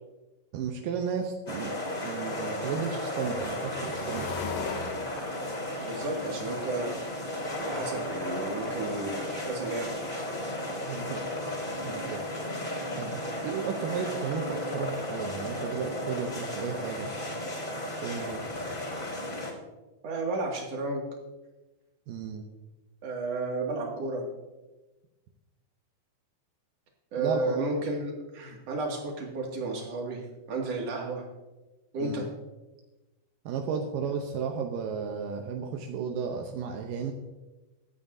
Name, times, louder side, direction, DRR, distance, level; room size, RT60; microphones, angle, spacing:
voice 1, 0.5-1.8 2.0-4.3 10.9-11.5 11.8-12.2 13.0-17.1 18.0-18.4 22.1-22.4 27.2-27.7 32.0-32.3 33.5-37.1, right 6 dB, 80° right, 3 dB, 2.0 m, -34 dB
sound 1, 1.5-19.5, left 1 dB, 15° left, 2.6 m, -34 dB
sound 2, 3.2-8.0 8.3-8.4 8.6-8.7 9.4-9.5 9.9-10.0 10.3-10.4 10.6-11.1 12.4-12.5 12.8-13.8, left 7 dB, 80° left, 1.9 m, -41 dB
voice 2, 5.8-6.9 7.6-10.0 13.3-13.5 20.0-21.0 23.0-24.2 27.1-30.2 30.5-31.2 31.9-32.3, right 2 dB, 45° right, -1 dB, 2.7 m, -32 dB
22.5 x 9.0 x 2.7 m, 1.1 s
omnidirectional pair, 5.0 m